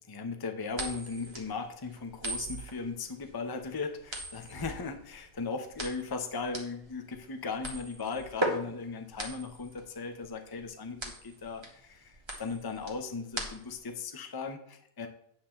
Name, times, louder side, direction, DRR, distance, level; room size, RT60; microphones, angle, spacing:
voice 1, 0.0-15.1, left 4 dB, 20° left, 6 dB, 0.7 m, -37 dB
sound 1, 0.7-13.9, right 1 dB, 20° right, 1.5 m, -39 dB
9.3 x 3.8 x 7.2 m, 0.70 s
omnidirectional pair, 1.4 m